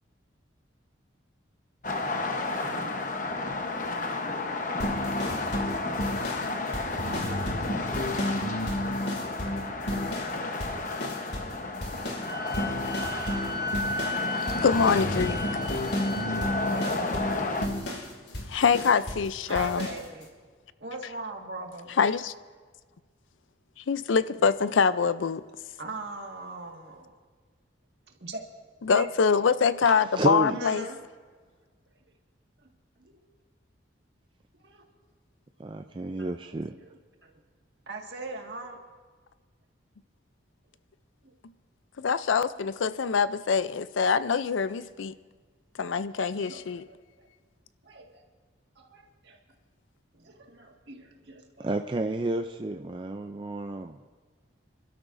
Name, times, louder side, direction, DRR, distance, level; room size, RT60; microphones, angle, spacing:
sound 1, 1.8-17.7, left 2 dB, 40° left, 1.0 m, -32 dB
sound 2, 4.8-10.3 10.6-11.6 11.8-19.3 19.5-20.0, equal, 60° left, 2.3 m, -32 dB
Wind instrument woodwind instrument, 12.2-17.0, left 1 dB, 5° right, 5.2 m, -35 dB
voice 1, 14.6-15.4 18.3-19.9 22.0-22.3 23.9-25.4 28.8-30.9 42.0-45.1 45.8-46.8, left 6 dB, 85° left, 0.5 m, -24 dB
voice 2, 19.5-20.3 20.8-21.9 25.8-27.1 28.2-28.4 28.8-29.1 30.4-31.0 33.0-33.2 34.6-34.8 36.2-36.3 36.8-37.3 37.9-38.8 44.8-44.9 46.3-47.3 47.8-48.2 48.8-49.4 50.1-51.7, right 3 dB, 65° right, 1.8 m, -40 dB
voice 3, 30.2-30.6 35.6-36.7 51.6-54.0, right 2 dB, 25° right, 0.4 m, -30 dB
28.0 x 12.5 x 2.6 m
head